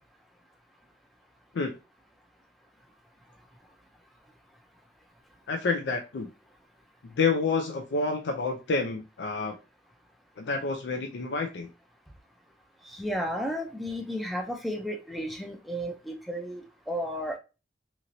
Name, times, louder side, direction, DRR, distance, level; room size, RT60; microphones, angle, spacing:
voice 1, 5.5-6.3 7.2-9.5 10.4-11.7, left 4 dB, 75° left, 4 dB, 0.4 m, -28 dB
voice 2, 12.9-17.4, equal, ahead, 3 dB, 0.4 m, -33 dB
2.9 x 2.9 x 2.6 m, 0.30 s
head